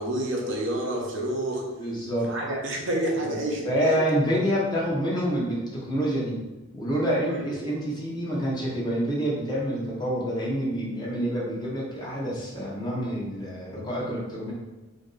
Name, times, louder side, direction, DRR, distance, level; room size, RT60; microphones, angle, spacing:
voice 1, 0.0-1.7 2.3-4.0 7.3-7.5, right 1 dB, 60° right, -1 dB, 0.6 m, -29 dB
voice 2, 1.8-2.3 3.3-3.4 3.6-6.4 6.7-14.5, equal, 20° left, -6 dB, 0.8 m, -27 dB
2.9 x 2.6 x 3.8 m, 1.1 s
head